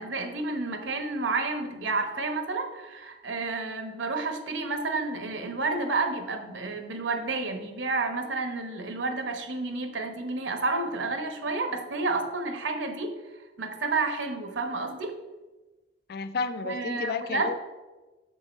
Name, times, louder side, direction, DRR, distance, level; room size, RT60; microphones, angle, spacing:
voice 1, 0.0-13.1 13.6-15.1 16.6-17.5, right 3 dB, 75° right, 6 dB, 1.0 m, -30 dB
voice 2, 16.1-17.6, left 4 dB, 60° left, 12 dB, 0.4 m, -31 dB
6.7 x 5.5 x 4.6 m, 1.2 s
head